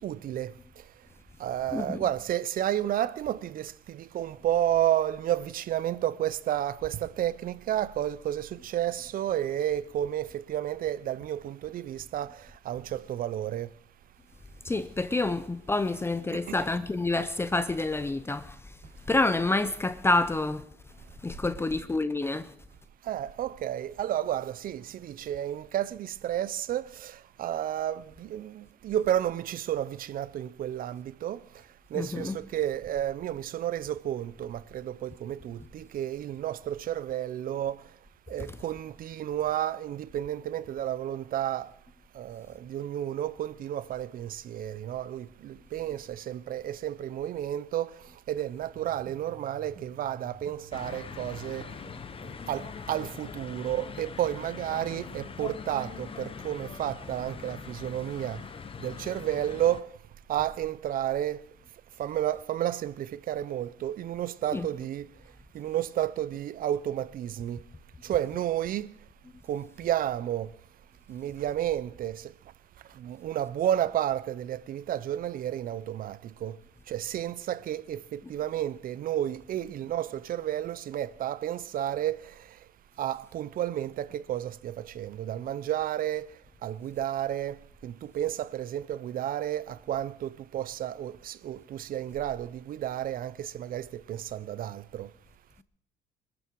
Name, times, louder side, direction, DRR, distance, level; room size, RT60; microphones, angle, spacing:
voice 1, 0.0-0.5 1.4-3.7 4.1-8.5 8.7-12.3 12.7-13.7 16.5-16.6 23.1-26.8 27.4-28.0 28.3-31.4 31.9-37.7 38.3-41.6 42.2-42.4 42.7-45.2 45.7-46.0 46.3-47.9 48.3-51.6 52.5-52.6 52.9-58.4 58.8-59.8 60.3-61.4 62.0-65.0 65.6-67.6 68.1-68.9 69.5-70.5 71.1-72.1 73.1-76.1 76.4-76.5 76.9-82.2 83.0-86.2 86.6-87.5 87.8-93.3 93.6-95.1, right 11 dB, 55° right, 0.8 m, -31 dB
voice 2, 14.6-18.7 19.1-20.7 21.2-22.5 31.9-32.3 64.5-64.7, left 2 dB, 15° left, 0.7 m, -28 dB
sound 1, 48.7-54.7, right 3 dB, 40° right, 3.1 m, -53 dB
sound 2, 50.7-59.8, left 6 dB, 35° left, 1.1 m, -42 dB
24.5 x 12.5 x 4.7 m
cardioid pair, 110°, 17 cm